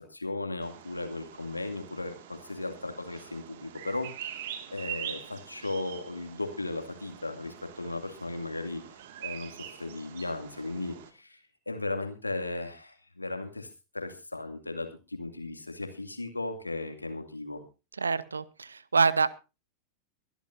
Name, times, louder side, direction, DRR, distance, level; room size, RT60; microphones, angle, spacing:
voice 1, 0.0-8.8 9.2-11.4 11.7-13.7 13.9-17.6, left 2 dB, 85° left, 6 dB, 2.4 m, -36 dB
Bird vocalization bird call bird song, 0.6-11.1, right 11 dB, 55° right, 2.0 m, -44 dB
voice 2, 18.0-19.3, right 5 dB, 75° right, 19 dB, 0.8 m, -26 dB
23.0 x 12.0 x 2.6 m, 0.30 s
figure-of-eight pair, 90°, 0 cm